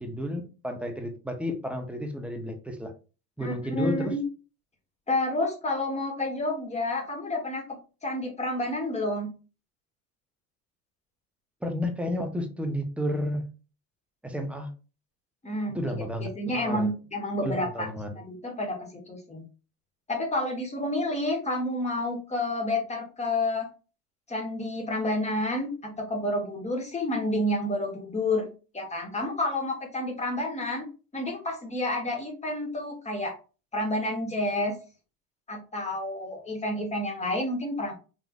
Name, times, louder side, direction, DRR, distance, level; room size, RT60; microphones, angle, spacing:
voice 1, 0.0-2.9 3.4-4.1 11.6-13.5 14.2-14.7 15.7-16.9 17.4-18.1, left 1 dB, 5° right, 4 dB, 0.5 m, -32 dB
voice 2, 3.4-4.2 5.1-9.3 15.4-17.9 18.1-19.4 20.1-23.7 24.3-30.8 31.1-33.3 33.7-34.8 35.5-37.9, left 1 dB, 15° left, 1 dB, 1.1 m, -30 dB
3.1 x 2.5 x 2.3 m, 0.33 s
hypercardioid pair, 80°, 47 cm